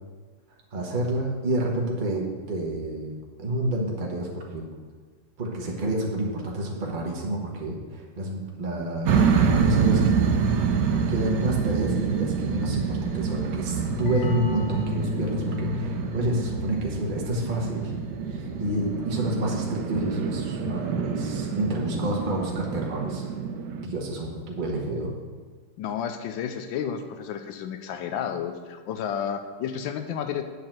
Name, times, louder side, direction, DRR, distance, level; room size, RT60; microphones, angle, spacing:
voice 1, 0.7-4.6 5.4-10.2 10.4-10.5 11.1-17.9 18.3-23.2 23.8-25.1, right 1 dB, 30° right, -1 dB, 1.2 m, -29 dB
sound 1, 9.1-23.9, right 6 dB, 70° right, 1.2 m, -27 dB
sound 2, 14.1-19.5, left 6 dB, 60° left, 1.1 m, -34 dB
voice 2, 25.8-30.4, left 8 dB, 85° left, 8 dB, 1.4 m, -31 dB
8.5 x 4.9 x 7.4 m, 1.5 s
omnidirectional pair, 2.1 m